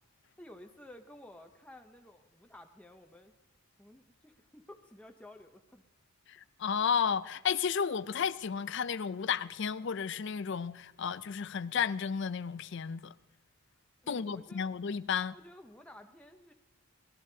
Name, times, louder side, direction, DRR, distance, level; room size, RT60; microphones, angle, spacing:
voice 1, 0.4-3.3 3.8-5.8 14.0-14.7 15.3-16.5, left 1 dB, 5° left, 0.7 m, -53 dB
voice 2, 6.3-13.1 14.1-15.4, left 7 dB, 50° left, 0.4 m, -33 dB
23.5 x 18.5 x 2.8 m
head